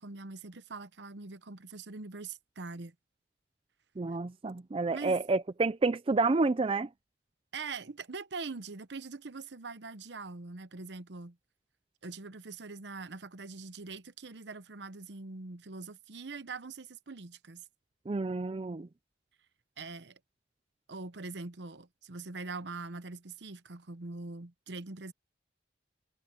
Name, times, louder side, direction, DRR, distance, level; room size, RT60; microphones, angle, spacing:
voice 1, 0.0-2.9 4.9-5.2 7.5-11.4 12.0-17.6 19.8-20.2 20.9-25.1, right 3 dB, 70° right, 0.9 m, -43 dB
voice 2, 4.0-6.9 18.1-18.9, right 3 dB, 30° right, 0.4 m, -29 dB
head